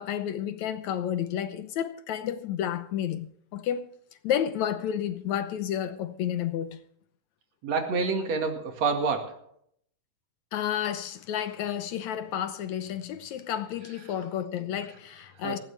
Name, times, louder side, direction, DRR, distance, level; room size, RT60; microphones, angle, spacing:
voice 1, 0.0-3.9 4.2-6.8 10.5-15.6, left 10 dB, 70° left, 2.0 m, -31 dB
voice 2, 7.6-9.4 15.4-15.6, right 4 dB, 55° right, 3.1 m, -28 dB
19.0 x 15.5 x 3.4 m
omnidirectional pair, 3.6 m